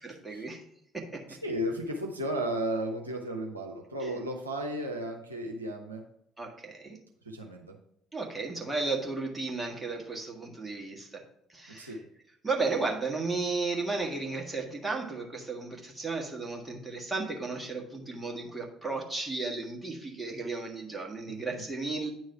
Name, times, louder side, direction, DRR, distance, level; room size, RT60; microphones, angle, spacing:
voice 1, 0.0-0.6 0.9-1.4 4.0-4.1 6.4-7.0 8.1-11.2 11.5-12.0 12.4-22.1, right 3 dB, 15° right, 0 dB, 1.4 m, -34 dB
voice 2, 1.3-6.0 7.3-7.7 11.8-12.0 21.3-21.7, right 1 dB, 85° right, 1 dB, 0.6 m, -34 dB
9.1 x 3.2 x 5.6 m, 0.75 s
figure-of-eight pair, 50°, 0 cm